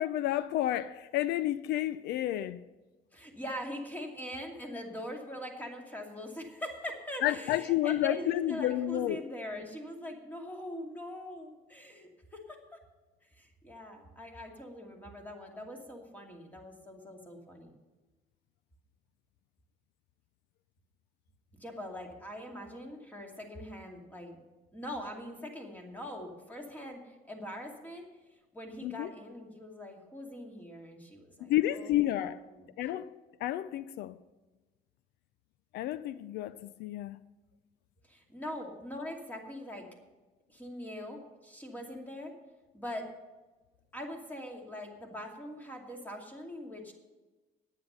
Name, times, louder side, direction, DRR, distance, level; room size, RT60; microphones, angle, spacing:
voice 1, 0.0-2.6 7.2-9.2 28.8-29.1 31.4-32.4 32.8-33.1 33.4-34.2 35.7-37.2, left 13 dB, 80° left, 0.5 m, -30 dB
voice 2, 3.1-12.8 13.3-17.8 21.6-24.4 24.7-28.1 28.5-32.7 38.1-39.9 40.5-42.3 42.7-43.1 43.9-46.9, left 1 dB, 10° left, 2.5 m, -42 dB
9.9 x 9.6 x 6.8 m
cardioid pair, 110°, 17 cm